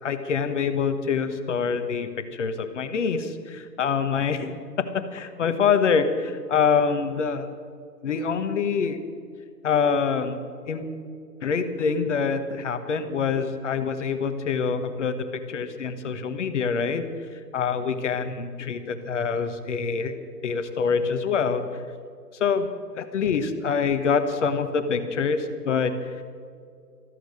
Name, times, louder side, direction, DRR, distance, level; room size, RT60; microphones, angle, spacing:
voice 1, 0.0-4.5 5.1-7.5 8.0-9.0 9.6-10.9 11.4-15.2 15.5-17.0 17.3-20.1 20.4-21.6 22.4-22.7 22.9-26.2, left 6 dB, 45° left, 9 dB, 1.4 m, -25 dB
14.5 x 14.0 x 6.5 m, 2.3 s
hypercardioid pair, 145°, 50 cm